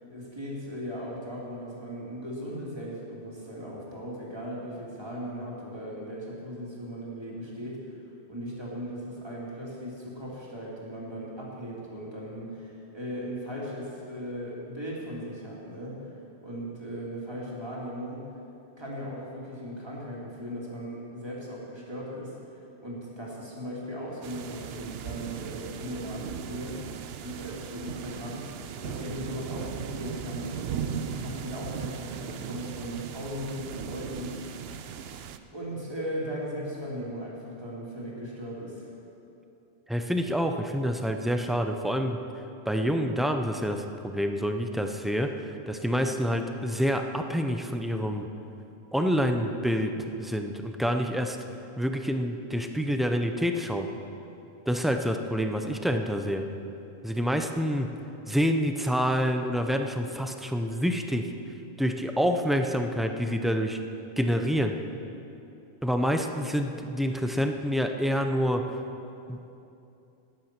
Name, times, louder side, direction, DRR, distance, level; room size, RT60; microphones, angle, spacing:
voice 1, 0.0-8.0 8.3-16.1 16.4-18.3 18.8-22.4 22.8-26.9 27.2-28.5 28.8-34.4 35.5-38.9, equal, 25° right, -5 dB, 2.6 m, -38 dB
sound 1, 24.2-35.4, right 8 dB, 70° right, 0.8 m, -38 dB
voice 2, 39.9-42.2 42.7-48.3 48.9-49.9 50.2-51.4 51.8-53.9 54.7-56.5 57.0-57.9 58.3-61.3 61.8-63.8 64.2-64.8 65.8-68.6 69.3-69.4, equal, ahead, 5 dB, 0.4 m, -27 dB
13.0 x 9.6 x 5.9 m, 2.8 s
omnidirectional pair, 1.1 m